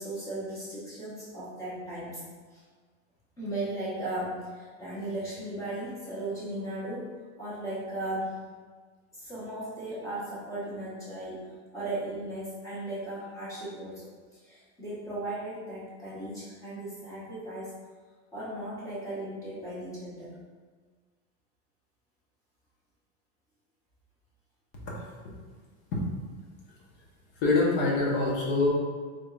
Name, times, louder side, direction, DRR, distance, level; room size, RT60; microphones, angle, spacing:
voice 1, 0.0-2.2 2.5-2.6 3.4-8.4 9.1-17.7 18.3-20.4, right 1 dB, 10° left, -9 dB, 0.8 m, -36 dB
voice 2, 24.9-25.3 25.9-26.0 27.3-28.7, left 3 dB, 50° left, -3 dB, 0.9 m, -26 dB
3.9 x 3.5 x 2.3 m, 1.5 s
supercardioid pair, 175°, 34 cm